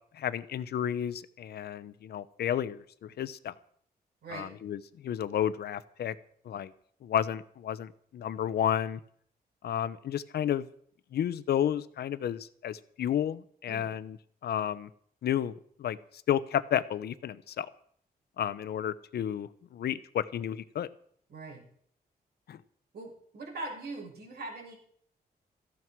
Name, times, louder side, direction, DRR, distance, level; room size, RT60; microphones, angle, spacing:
voice 1, 0.1-3.5 4.3-6.1 6.4-6.7 7.0-9.0 9.6-10.7 11.1-14.2 14.4-14.9 15.2-15.5 15.8-16.0 16.3-17.7 18.4-20.9 22.5-22.6, left 10 dB, 80° left, 15 dB, 0.9 m, -32 dB
voice 2, 4.2-4.5 13.7-13.9 21.3-21.6 22.9-24.8, right 2 dB, 80° right, 0 dB, 6.9 m, -41 dB
17.0 x 14.5 x 4.7 m, 0.62 s
wide cardioid pair, 125°, 16 cm